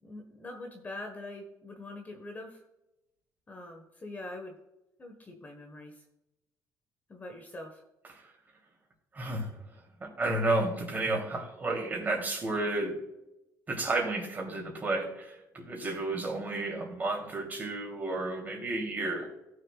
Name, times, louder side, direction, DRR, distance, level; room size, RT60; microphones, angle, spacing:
voice 1, 0.0-2.6 3.5-4.6 5.0-5.9 7.1-7.8 16.2-16.4, left 2 dB, 25° left, 3 dB, 1.5 m, -43 dB
voice 2, 9.1-9.6 10.0-13.0 13.7-19.3, right 2 dB, 25° right, 0 dB, 3.3 m, -32 dB
17.5 x 6.6 x 2.5 m, 0.92 s
cardioid pair, 125°, 7 cm